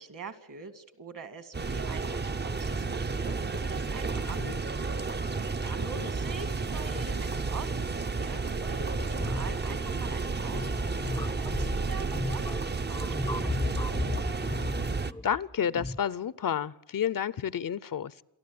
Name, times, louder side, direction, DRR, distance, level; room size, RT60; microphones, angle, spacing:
voice 1, 0.0-13.1, right 4 dB, 55° right, 2.1 m, -44 dB
sound 1, 1.5-15.1, right 4 dB, 25° right, 0.7 m, -32 dB
voice 2, 4.2-4.6 5.8-6.1 15.2-18.2, left 8 dB, 55° left, 0.7 m, -31 dB
sound 2, 8.9-16.0, left 2 dB, 10° left, 0.7 m, -35 dB
28.0 x 12.0 x 8.6 m
wide cardioid pair, 110°, 39 cm